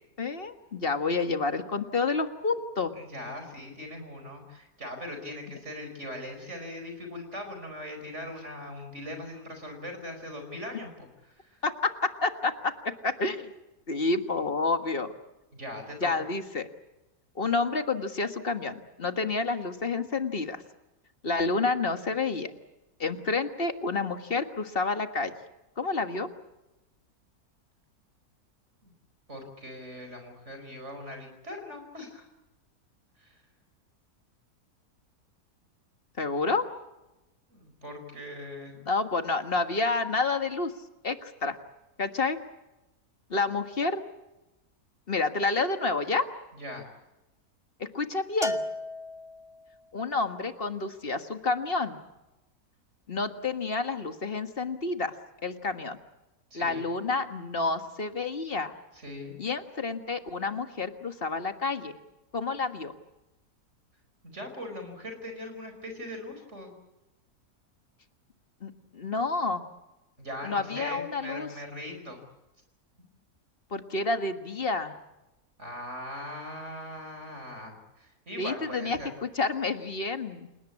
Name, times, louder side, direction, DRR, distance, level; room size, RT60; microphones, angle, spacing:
voice 1, 0.2-2.9 11.6-13.6 13.9-15.1 16.0-16.7 17.3-20.6 21.2-22.5 23.0-25.3 25.8-26.3 36.2-36.7 38.8-40.7 41.0-41.6 42.0-42.4 43.3-44.0 45.1-46.3 47.8-48.6 49.9-52.0 53.1-55.1 55.4-56.0 56.5-58.7 59.4-62.0 62.3-62.9 68.6-69.6 70.4-71.5 73.7-74.9 78.4-80.5, left 3 dB, 40° left, 8 dB, 1.7 m, -29 dB
voice 2, 3.0-11.1 11.4-11.6 15.5-16.1 28.8-28.9 29.3-32.3 33.2-33.4 37.5-38.7 46.6-46.9 56.5-56.9 58.9-59.4 64.2-66.7 70.2-72.2 73.0-73.1 75.6-79.1, left 1 dB, 50° right, 6 dB, 5.3 m, -40 dB
Bell, 48.4-49.8, left 1 dB, ahead, 1.4 m, -33 dB
29.0 x 18.0 x 8.6 m, 0.98 s
omnidirectional pair, 1.6 m